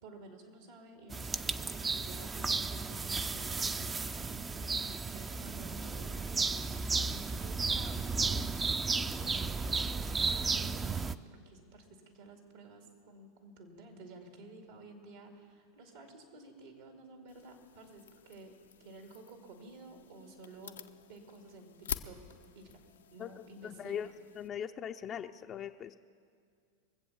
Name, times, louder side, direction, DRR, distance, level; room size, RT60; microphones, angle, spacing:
voice 1, 0.0-8.4 9.2-10.0 10.2-18.5 18.8-20.8 21.1-22.2 22.5-22.8 23.1-24.2, right 2 dB, 70° right, 3 dB, 2.3 m, -52 dB
sound 1, 1.1-11.1, right 4 dB, 20° right, 0.5 m, -34 dB
sound 2, 17.3-24.5, left 9 dB, 85° left, 0.6 m, -47 dB
voice 2, 23.6-24.1 24.4-26.0, left 9 dB, 35° left, 5 dB, 0.5 m, -40 dB
23.0 x 7.7 x 7.1 m, 2.1 s
hypercardioid pair, 100°, 0 cm